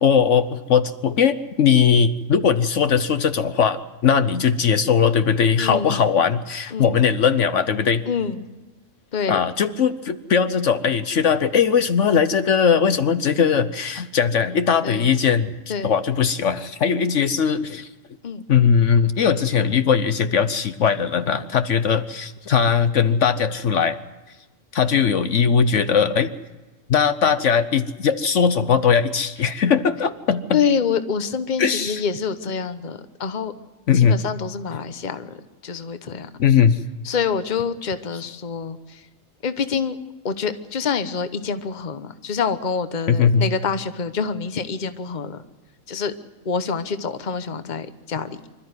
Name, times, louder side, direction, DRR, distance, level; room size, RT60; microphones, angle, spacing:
voice 1, 0.0-8.0 9.3-15.5 15.8-17.9 18.5-24.0 24.7-26.3 26.9-30.6 31.6-32.0 33.9-34.2 36.4-36.8 43.1-43.5, left 7 dB, 65° left, 11 dB, 1.2 m, -19 dB
voice 2, 5.6-6.1 6.7-6.9 8.1-8.5 9.1-9.4 14.8-15.1 15.7-15.9 18.2-18.4 30.5-33.5 33.9-35.4 35.6-36.3 37.0-39.0 39.4-40.0 40.2-45.4 45.9-46.1 46.4-48.3, left 6 dB, 40° left, 10 dB, 1.1 m, -26 dB
25.5 x 13.5 x 9.6 m, 1.2 s
omnidirectional pair, 1.4 m